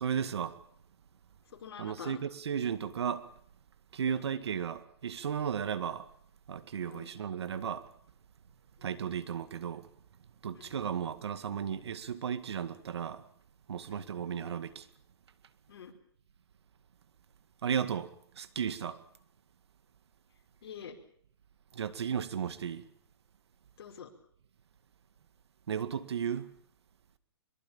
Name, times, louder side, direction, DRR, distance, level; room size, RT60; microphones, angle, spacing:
voice 1, 0.0-0.6 1.8-3.3 3.9-6.0 6.5-7.9 8.8-9.9 10.4-13.2 13.7-14.9 17.6-19.0 21.7-22.8 25.7-26.5, right 8 dB, 75° right, 2.0 m, -34 dB
voice 2, 1.5-2.2 4.1-4.3 6.8-7.1 8.8-8.9 10.6-10.8 13.9-14.1 15.7-15.9 20.6-21.0 23.8-24.1, left 7 dB, 60° left, 5.2 m, -47 dB
23.5 x 22.5 x 7.2 m
hypercardioid pair, 150°, 14 cm